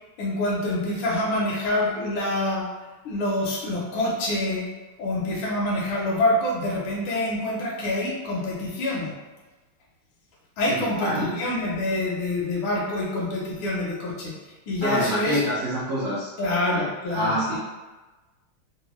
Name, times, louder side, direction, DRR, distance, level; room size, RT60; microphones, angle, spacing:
voice 1, 0.2-2.6 3.0-4.7 5.0-9.1 10.6-14.3 14.7-15.4 16.4-17.6, left 1 dB, 75° left, -4 dB, 1.4 m, -26 dB
voice 2, 10.7-11.4 14.8-16.3 16.7-16.9 17.1-17.6, equal, 75° right, -10 dB, 0.7 m, -26 dB
3.7 x 2.2 x 3.0 m, 1.2 s
omnidirectional pair, 2.3 m